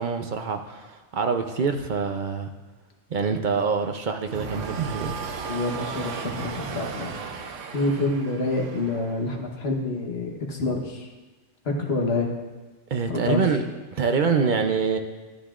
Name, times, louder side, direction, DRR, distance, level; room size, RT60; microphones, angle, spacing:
voice 1, 0.0-2.5 3.1-5.2 12.9-13.7 13.9-15.0, right 5 dB, 50° right, 6 dB, 0.6 m, -25 dB
sound 1, 4.2-9.4, right 5 dB, 80° right, 1.1 m, -35 dB
voice 2, 5.5-7.1 7.7-11.1 11.6-12.3 13.1-13.4, left 2 dB, 55° left, 1 dB, 1.4 m, -27 dB
11.5 x 10.5 x 2.5 m, 1.2 s
omnidirectional pair, 1.3 m